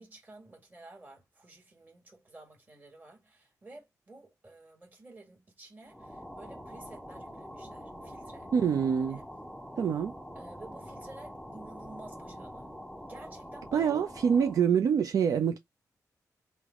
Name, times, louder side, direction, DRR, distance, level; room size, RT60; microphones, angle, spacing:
voice 1, 0.0-9.3 10.3-12.7 13.0-14.1, right 2 dB, 25° right, 1.5 m, -52 dB
sound 1, 5.9-14.7, equal, ahead, 0.5 m, -45 dB
voice 2, 8.5-9.2 9.8-10.1 13.7-15.6, right 7 dB, 65° right, 0.4 m, -26 dB
3.2 x 2.1 x 3.5 m
cardioid pair, 100°, 6 cm